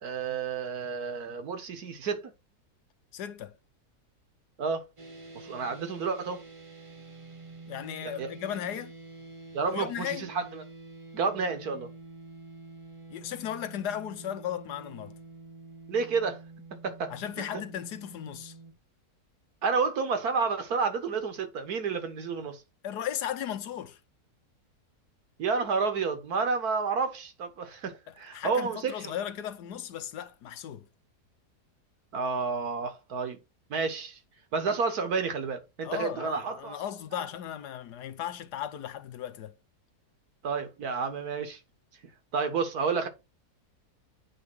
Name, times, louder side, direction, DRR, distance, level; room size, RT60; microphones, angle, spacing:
voice 1, 0.0-2.2 4.6-4.9 5.4-6.4 8.0-8.3 9.5-10.6 11.1-11.9 15.9-16.4 16.8-17.1 19.6-22.6 25.4-29.1 32.1-33.4 33.7-34.2 34.5-36.7 40.4-41.6 42.3-43.1, right 5 dB, 70° right, 1.8 m, -30 dB
voice 2, 3.1-3.6 7.7-8.9 9.7-10.3 13.1-15.2 17.1-18.5 22.8-24.0 28.1-30.9 35.8-39.5, left 10 dB, 90° left, 1.4 m, -36 dB
sound 1, 5.0-18.7, right 3 dB, 25° right, 1.0 m, -48 dB
8.7 x 3.5 x 6.1 m
omnidirectional pair, 1.7 m